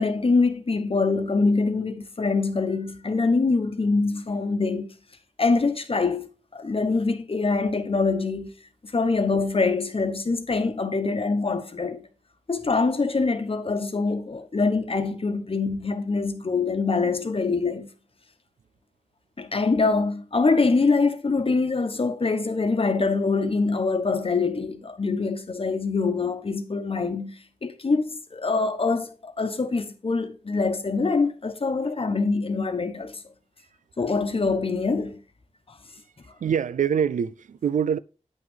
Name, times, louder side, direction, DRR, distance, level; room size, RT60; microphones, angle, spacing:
voice 1, 0.0-4.9 5.4-8.5 8.9-12.1 12.5-17.9 19.4-33.2 34.0-35.2 35.7-35.8, left 4 dB, 45° left, 1.1 m, -24 dB
voice 2, 36.4-38.0, right 8 dB, 80° right, 0.4 m, -24 dB
9.0 x 6.0 x 3.7 m
cardioid pair, 55°, 13 cm